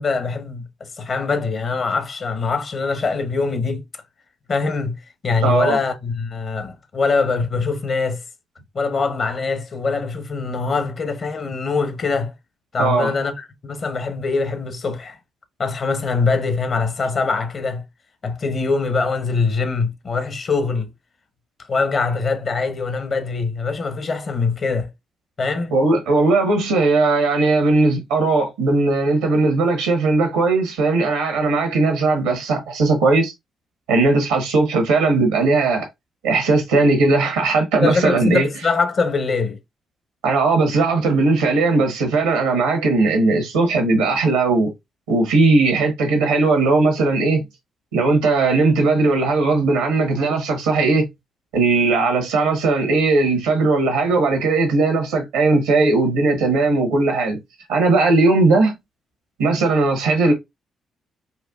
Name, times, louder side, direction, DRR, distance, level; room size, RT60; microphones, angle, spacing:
voice 1, 0.0-3.8 4.5-5.0 5.2-8.2 8.7-12.3 12.7-15.2 15.6-17.8 18.2-20.9 21.7-24.9 25.4-25.7 37.8-39.6, left 4 dB, 50° left, 0.8 m, -23 dB
voice 2, 5.4-5.8 12.8-13.1 25.7-33.3 33.9-35.9 36.2-38.5 40.2-44.7 45.1-47.4 47.9-51.1 51.5-57.4 57.7-58.7 59.4-60.3, right 3 dB, 85° right, 1.0 m, -18 dB
4.2 x 2.3 x 2.3 m
hypercardioid pair, 45°, 0 cm